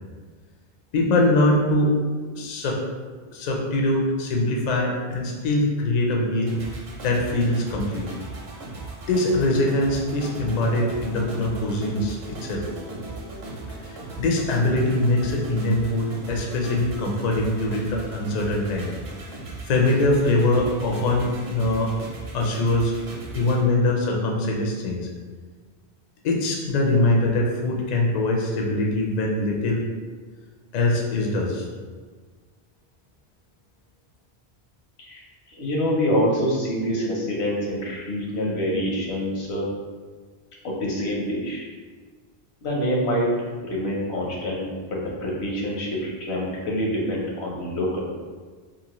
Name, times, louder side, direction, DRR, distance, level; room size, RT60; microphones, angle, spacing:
voice 1, 0.9-2.0 2.2-2.8 3.3-6.5 7.0-8.1 9.1-12.6 13.9-18.9 19.7-21.9 22.3-22.9 23.3-25.1 26.2-29.8 30.7-31.7, left 2 dB, 55° left, -1 dB, 0.5 m, -23 dB
sound 1, 6.5-23.6, right 3 dB, 65° right, 0.7 m, -37 dB
voice 2, 35.5-39.7 40.6-41.6 42.6-43.3 43.6-48.0, equal, 80° left, -3 dB, 1.0 m, -26 dB
2.7 x 2.4 x 2.9 m, 1.5 s
omnidirectional pair, 1.1 m